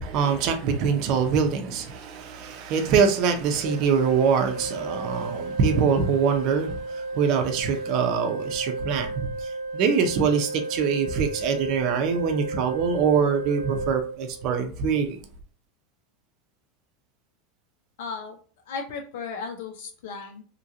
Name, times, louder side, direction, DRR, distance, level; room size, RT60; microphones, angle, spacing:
voice 1, 0.0-15.2, right 6 dB, 50° right, 0.5 m, -24 dB
Organ, 3.6-14.7, right 2 dB, 85° right, 0.7 m, -34 dB
voice 2, 18.0-18.4 18.7-20.4, left 5 dB, 80° left, 0.5 m, -35 dB
2.9 x 2.5 x 2.7 m
supercardioid pair, 145°, 0 cm